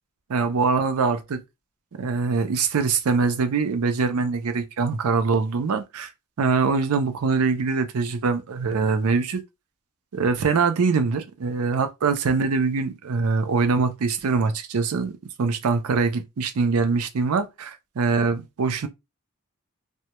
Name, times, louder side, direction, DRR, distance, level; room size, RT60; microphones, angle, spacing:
voice 1, 0.3-1.4 1.9-6.1 6.4-9.4 10.1-15.1 15.4-18.9, right 4 dB, 80° right, 0.5 m, -23 dB
2.1 x 2.1 x 2.8 m
head